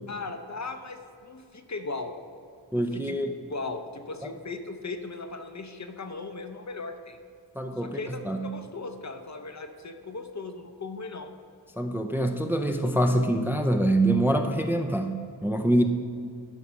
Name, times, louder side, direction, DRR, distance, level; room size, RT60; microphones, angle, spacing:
voice 1, 0.1-2.1 2.7-3.2 3.5-7.2 7.8-11.3, left 3 dB, 40° left, 6 dB, 0.8 m, -37 dB
voice 2, 2.7-3.3 7.6-8.5 11.8-15.8, right 1 dB, 5° right, 4 dB, 0.5 m, -25 dB
12.0 x 4.9 x 5.7 m, 2.3 s
wide cardioid pair, 80°, 42 cm